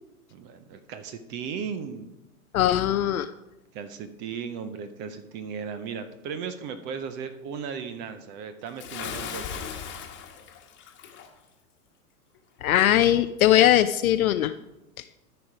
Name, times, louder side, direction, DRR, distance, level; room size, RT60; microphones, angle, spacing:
voice 1, 0.3-2.1 3.7-9.7, right 6 dB, 25° right, 10 dB, 0.5 m, -36 dB
voice 2, 2.5-3.3 12.6-14.5, left 12 dB, 65° left, 10 dB, 0.5 m, -20 dB
Bathtub (filling or washing) / Splash splatter, 8.8-11.3, left 7 dB, 25° left, 1.3 m, -37 dB
13.0 x 4.9 x 4.9 m, 0.97 s
hypercardioid pair, 110°, 45 cm